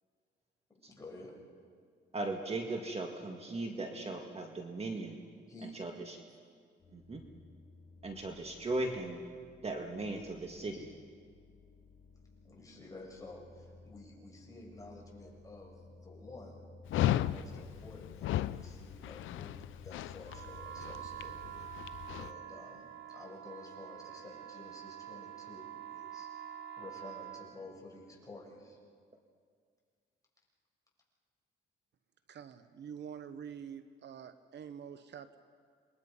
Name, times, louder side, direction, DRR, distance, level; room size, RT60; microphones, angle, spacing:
voice 1, 0.7-1.3 5.5-5.8 10.7-10.9 12.4-26.3 26.8-28.8, left 2 dB, 15° left, -3 dB, 7.5 m, -51 dB
voice 2, 2.1-5.2 5.7-6.2 6.9-7.2 8.0-9.2 9.6-10.9, right 2 dB, 30° right, 3 dB, 2.0 m, -38 dB
sound 1, 6.8-22.3, left 3 dB, 40° left, 4.0 m, -56 dB
Dog, 16.9-22.3, left 13 dB, 80° left, 0.6 m, -35 dB
sound 2, 20.3-27.5, right 10 dB, 85° right, 3.6 m, -46 dB
voice 3, 32.3-35.4, right 8 dB, 60° right, 11 dB, 0.9 m, -46 dB
28.0 x 22.0 x 5.5 m, 2.1 s
cardioid pair, 90°, 20 cm